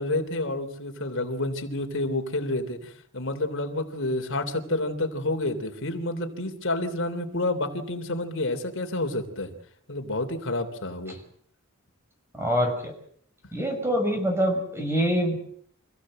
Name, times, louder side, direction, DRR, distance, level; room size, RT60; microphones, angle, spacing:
voice 1, 0.0-9.5 9.9-11.2, left 2 dB, 60° left, 6 dB, 3.5 m, -29 dB
voice 2, 12.3-12.9 13.5-15.4, equal, 10° right, 4 dB, 6.1 m, -25 dB
28.0 x 16.0 x 7.8 m, 0.63 s
head